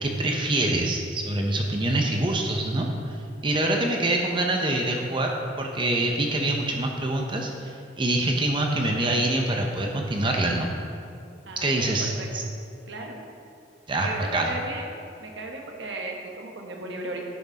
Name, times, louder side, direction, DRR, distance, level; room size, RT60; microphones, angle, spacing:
voice 1, 0.0-3.2 3.4-10.7 11.6-12.4 13.9-14.5, right 1 dB, 25° right, 1 dB, 0.6 m, -25 dB
voice 2, 11.5-12.3 12.9-13.2 14.0-14.9 15.2-17.2, right 2 dB, 70° right, 1 dB, 1.2 m, -36 dB
10.5 x 5.9 x 4.0 m, 2.4 s
head